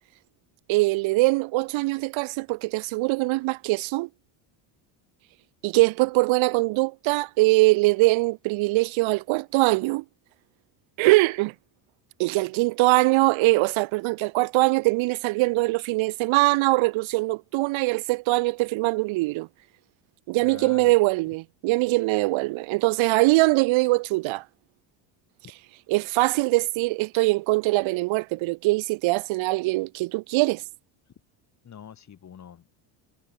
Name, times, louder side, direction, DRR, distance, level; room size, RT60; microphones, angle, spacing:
voice 1, 0.7-4.1 5.6-10.0 11.0-11.5 12.2-19.5 20.3-24.4 25.9-30.6, right 22 dB, 65° right, 1.8 m, -22 dB
voice 2, 20.4-20.9 31.6-32.7, left 8 dB, 35° left, 4.6 m, -44 dB
cardioid pair, 120°, 50 cm